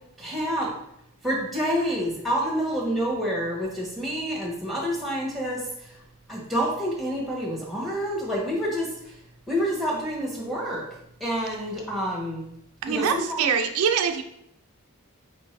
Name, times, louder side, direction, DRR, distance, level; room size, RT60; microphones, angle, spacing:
voice 1, 0.2-0.7 1.2-5.6 6.3-8.9 9.5-10.8 11.2-12.4 12.9-13.6, equal, ahead, -3 dB, 1.0 m, -28 dB
voice 2, 12.8-14.2, right 7 dB, 80° right, 6 dB, 0.4 m, -24 dB
4.7 x 2.6 x 3.2 m, 0.79 s
head